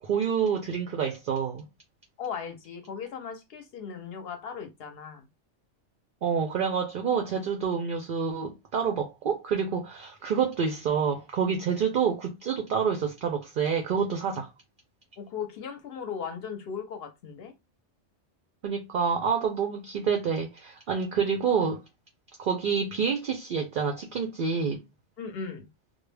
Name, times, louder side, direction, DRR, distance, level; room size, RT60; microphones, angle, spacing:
voice 1, 0.0-1.7 6.2-14.5 18.6-21.8 22.4-24.8, right 6 dB, 60° right, 0.5 m, -28 dB
voice 2, 2.2-5.3 15.2-17.5 25.2-25.7, left 6 dB, 60° left, 0.8 m, -37 dB
2.2 x 2.1 x 3.2 m
omnidirectional pair, 1.3 m